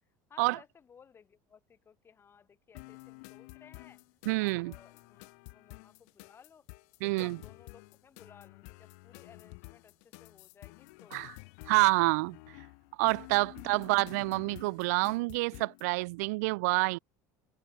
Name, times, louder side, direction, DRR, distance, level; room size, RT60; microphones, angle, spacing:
voice 1, 0.3-4.0 4.4-6.7 7.0-11.3 13.6-13.9, left 7 dB, 30° left, 6.8 m, -59 dB
sound 1, 2.7-15.9, left 33 dB, 75° left, 2.5 m, -50 dB
voice 2, 4.3-4.7 7.0-7.4 11.1-11.3 11.7-12.4 13.0-17.0, right 25 dB, 85° right, 0.4 m, -28 dB
supercardioid pair, 120°, 8 cm